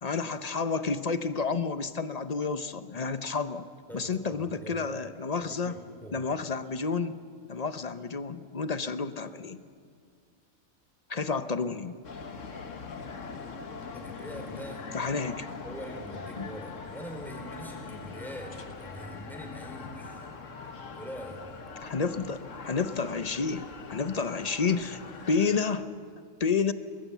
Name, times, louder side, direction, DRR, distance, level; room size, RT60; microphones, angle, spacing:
voice 1, 0.0-3.7 3.9-5.8 6.1-7.2 7.5-9.6 11.1-11.9 14.9-15.5 16.4-16.5 21.8-25.0 25.3-25.9 26.4-26.7, left 5 dB, 40° left, 12 dB, 0.7 m, -30 dB
voice 2, 3.9-4.9 5.4-6.2 13.9-14.9 15.6-20.3 20.9-21.4, equal, ahead, 2 dB, 3.9 m, -43 dB
sound 1, 12.0-25.6, left 4 dB, 70° left, 1.7 m, -42 dB
23.5 x 20.5 x 7.2 m, 2.1 s
omnidirectional pair, 1.4 m